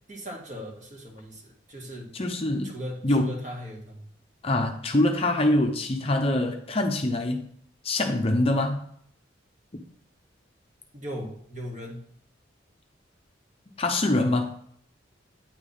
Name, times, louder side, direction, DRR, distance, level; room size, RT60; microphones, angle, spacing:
voice 1, 0.1-2.1 2.6-4.0 10.9-12.0, equal, 40° right, -1 dB, 1.7 m, -38 dB
voice 2, 2.1-2.7 3.0-3.4 4.4-7.5 7.8-8.8 9.7-9.8 13.8-14.6, left 1 dB, 30° left, 4 dB, 0.6 m, -24 dB
9.1 x 3.4 x 5.5 m, 0.63 s
head